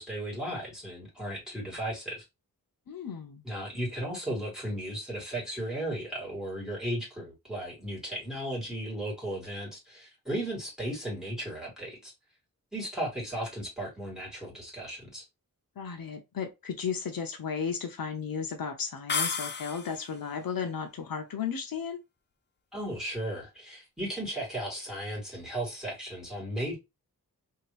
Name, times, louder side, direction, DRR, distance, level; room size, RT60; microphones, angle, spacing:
voice 1, 0.0-2.2 3.4-12.1 12.7-15.2 22.7-26.8, right 1 dB, ahead, 2.2 m, -35 dB
voice 2, 2.9-3.4 15.8-22.0, left 6 dB, 70° left, 0.7 m, -34 dB
sound 1, 19.1-20.2, left 5 dB, 30° left, 0.4 m, -32 dB
3.3 x 2.8 x 3.2 m
wide cardioid pair, 130°, 36 cm